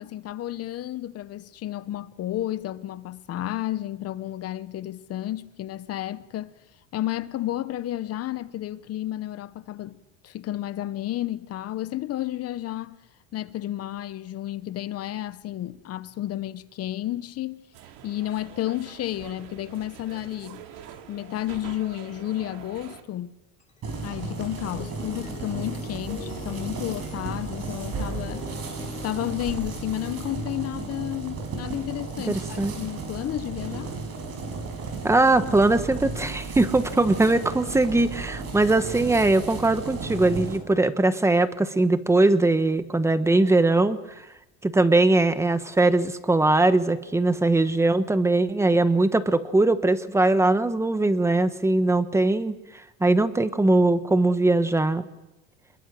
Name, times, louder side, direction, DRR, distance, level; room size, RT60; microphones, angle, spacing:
voice 1, 0.0-6.5 6.9-13.0 13.3-17.6 18.0-20.6 21.1-23.3 24.0-28.5 29.0-33.9, left 13 dB, 35° left, 0.9 m, -32 dB
sound 1, 17.7-23.0, right 9 dB, 75° right, 2.8 m, -45 dB
sound 2, 23.6-32.9, left 4 dB, 20° left, 3.1 m, -45 dB
sound 3, 23.8-40.6, right 4 dB, 40° right, 5.4 m, -34 dB
voice 2, 32.3-32.7 35.0-44.0 44.6-52.5 53.0-55.0, right 2 dB, 5° right, 1.1 m, -21 dB
27.0 x 21.5 x 7.6 m
cardioid pair, 145°, 40 cm